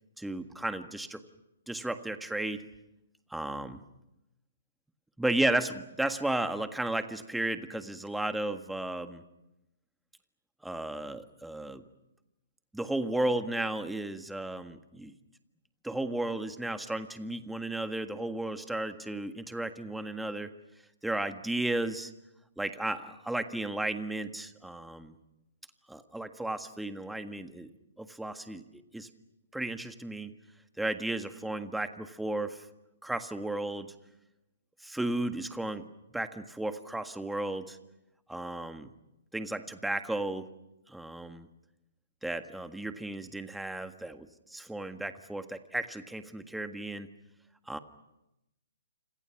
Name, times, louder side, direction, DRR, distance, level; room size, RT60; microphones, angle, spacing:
voice 1, 0.2-1.2 1.7-2.6 3.3-3.8 5.2-9.2 10.6-11.8 12.7-15.1 15.8-20.5 21.0-22.1 22.6-25.1 25.9-27.7 28.0-28.6 28.9-29.1 29.5-30.3 30.8-32.6 33.0-33.9 34.8-35.8 36.1-37.8 38.3-38.9 39.3-40.5 40.9-41.5 42.2-44.2 44.5-47.1 47.7-47.8, right 1 dB, 5° right, 8 dB, 1.6 m, -34 dB
28.5 x 27.0 x 5.9 m, 0.90 s
hypercardioid pair, 130°, 0 cm